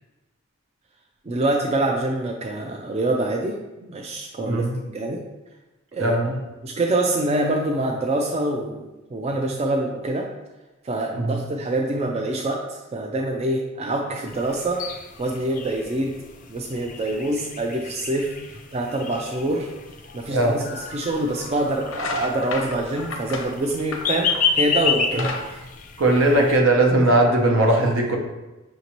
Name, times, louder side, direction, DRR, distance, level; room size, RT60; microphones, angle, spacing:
voice 1, 1.2-3.6 3.9-5.2 5.9-6.2 6.6-10.3 10.8-16.2 16.5-18.4 18.7-19.7 20.1-25.6, right 1 dB, 30° right, 0 dB, 0.4 m, -25 dB
voice 2, 6.0-6.4 11.1-11.4 20.3-20.7 26.0-28.2, right 1 dB, 70° right, 1 dB, 0.8 m, -19 dB
sound 1, 14.3-26.6, left 6 dB, 40° left, 0.4 m, -31 dB
sound 2, 21.3-21.5 21.8-24.6 24.9-26.6, left 3 dB, 85° left, 0.6 m, -32 dB
5.8 x 2.7 x 3.0 m, 1.1 s
head